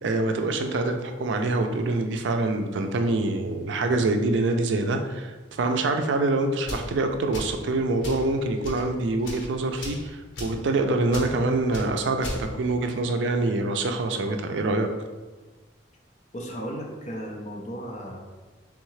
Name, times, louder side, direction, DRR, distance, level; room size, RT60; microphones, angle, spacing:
voice 1, 0.0-14.9, right 2 dB, 75° right, 5 dB, 0.4 m, -25 dB
sound 1, 6.7-6.9 7.3-7.6 8.0-8.3 8.6-8.8 9.2-9.5 9.8-10.0 10.4-10.6 11.1-11.3 11.7-11.9 12.2-12.4, left 1 dB, 80° left, 0.9 m, -35 dB
voice 2, 16.3-18.2, equal, 40° left, 0 dB, 0.6 m, -35 dB
3.6 x 3.5 x 3.1 m, 1.3 s
head